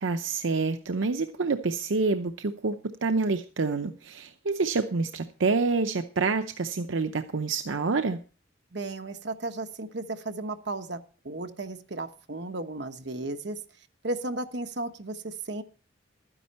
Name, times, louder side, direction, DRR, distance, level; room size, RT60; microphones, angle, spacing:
voice 1, 0.0-8.2, right 4 dB, 80° right, 8 dB, 0.7 m, -27 dB
voice 2, 8.7-11.0 11.2-13.6 14.0-15.6, right 2 dB, 60° right, 8 dB, 1.2 m, -34 dB
12.5 x 10.0 x 4.2 m, 0.38 s
head